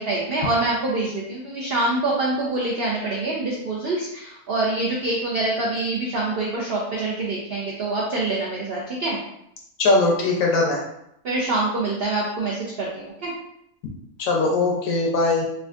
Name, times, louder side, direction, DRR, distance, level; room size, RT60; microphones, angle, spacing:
voice 1, 0.0-9.2 11.2-13.3, right 2 dB, 70° right, -4 dB, 0.5 m, -25 dB
voice 2, 9.8-10.8 14.2-15.4, left 3 dB, 70° left, -1 dB, 1.0 m, -20 dB
3.4 x 2.4 x 2.3 m, 0.78 s
omnidirectional pair, 1.6 m